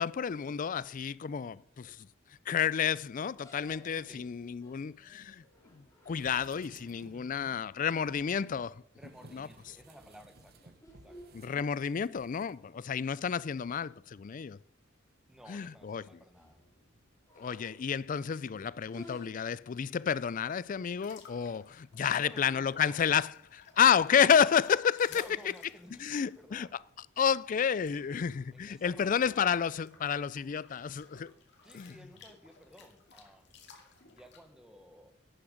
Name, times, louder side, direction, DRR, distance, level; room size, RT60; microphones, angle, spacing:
voice 1, 0.0-2.1 2.5-5.4 5.7-8.7 9.3-9.5 11.3-14.6 15.5-16.0 17.4-25.2 26.0-26.7 27.2-31.3 31.7-32.0, left 7 dB, 40° left, 0.3 m, -30 dB
sound 1, 3.4-6.7 8.4-8.6 9.0-9.4 9.8-12.3 12.8-12.9 13.2-13.3 14.1-14.2 14.5-14.7 15.0-15.4 16.0-18.2 18.8-19.3, left 1 dB, 15° left, 2.5 m, -56 dB
sound 2, 6.1-7.3 8.0-12.5 12.8-12.9, right 3 dB, 50° right, 0.9 m, -57 dB
voice 2, 7.1-7.6 8.9-10.7 11.0-11.2 12.6-12.9 15.3-16.6 22.0-23.0 25.1-26.8 28.5-29.6 31.6-33.4 34.1-35.1, equal, 5° right, 1.2 m, -55 dB
sound 3, 21.0-34.4, left 5 dB, 60° left, 2.3 m, -57 dB
11.5 x 9.9 x 5.1 m
head